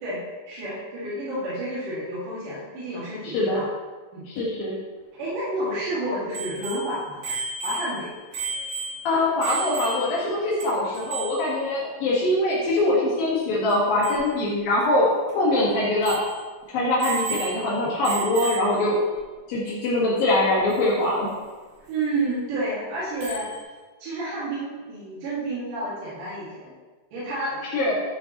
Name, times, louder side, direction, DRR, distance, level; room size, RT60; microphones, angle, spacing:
voice 1, 0.0-3.7 4.1-4.2 5.2-7.2 7.6-8.1 21.9-23.5 24.0-26.7 27.1-27.6, right 1 dB, 60° right, -9 dB, 3.5 m, -30 dB
voice 2, 3.2-3.6 4.3-4.7 9.0-15.1 15.3-16.2 16.7-19.0 19.5-21.3 27.7-28.0, left 1 dB, 70° left, -6 dB, 3.3 m, -23 dB
Bicycle bell, 6.3-10.3 10.6-10.7 10.9-11.5 13.7-13.8 14.0-14.2 14.8-14.9 15.3-15.4 16.0-16.4 17.0-17.7 18.0-18.8 20.7-20.8 23.2-23.6, right 3 dB, 80° right, 5.1 m, -33 dB
12.0 x 7.0 x 3.0 m, 1.3 s
omnidirectional pair, 4.4 m